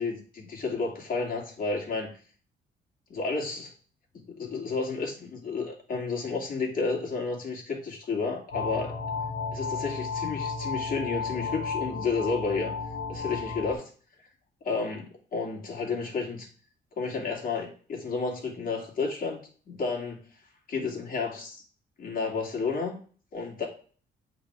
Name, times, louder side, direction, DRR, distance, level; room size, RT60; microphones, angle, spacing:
voice 1, 0.0-2.1 3.1-3.7 4.1-8.9 9.5-12.7 13.1-13.9 14.6-16.5 17.0-20.3 20.7-21.6 22.0-23.0 23.3-23.7, left 4 dB, 45° left, -2 dB, 2.9 m, -31 dB
sound 1, 8.5-13.7, left 4 dB, 65° left, 2.6 m, -33 dB
7.9 x 4.2 x 5.0 m, 0.42 s
cardioid pair, 90°, 20 cm